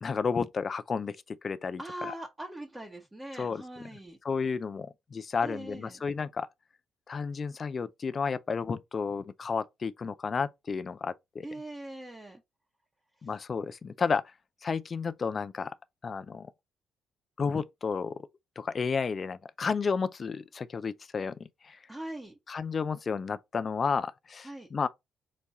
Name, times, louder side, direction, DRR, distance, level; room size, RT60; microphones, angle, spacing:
voice 1, 0.0-2.1 3.4-3.6 4.2-6.5 7.1-11.5 13.2-14.3 14.6-15.7 16.0-16.5 17.4-18.1 18.6-21.8 22.5-24.9, left 5 dB, 40° left, 0.4 m, -32 dB
voice 2, 1.8-4.2 5.4-6.0 11.4-12.4 21.9-22.4 24.4-24.7, right 1 dB, 15° right, 1.0 m, -41 dB
4.1 x 2.3 x 4.6 m
cardioid pair, 90°, 0 cm